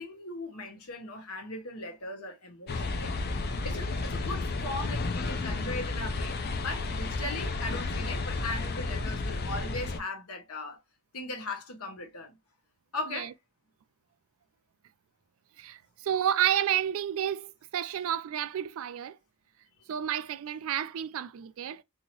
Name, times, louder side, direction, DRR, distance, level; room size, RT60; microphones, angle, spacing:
voice 1, 0.0-10.8 11.1-12.3 12.9-13.3, left 2 dB, 75° left, 1.1 m, -38 dB
sound 1, 2.7-10.0, left 3 dB, 45° left, 0.5 m, -32 dB
voice 2, 15.6-19.2 19.9-21.8, right 10 dB, 65° right, 0.3 m, -30 dB
2.8 x 2.7 x 2.8 m
head